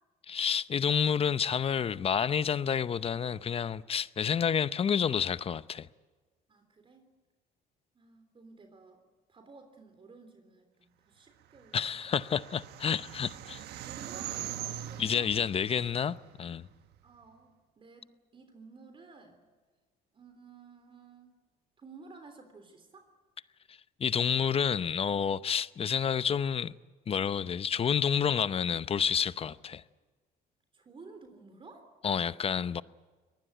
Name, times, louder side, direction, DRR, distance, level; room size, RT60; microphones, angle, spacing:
voice 1, 0.3-5.9 11.7-13.6 15.0-16.7 23.7-26.7 27.1-29.8 32.0-32.8, left 7 dB, 35° left, 0.7 m, -29 dB
voice 2, 6.5-7.1 7.9-9.0 9.3-12.1 13.2-13.4 13.8-15.3 17.0-17.5 17.8-19.4 20.1-21.4 21.8-23.1 30.7-31.9, right 4 dB, 30° right, 3.5 m, -54 dB
sound 1, 11.6-17.0, right 11 dB, 75° right, 1.4 m, -42 dB
22.5 x 19.5 x 9.2 m
cardioid pair, 110°, 17 cm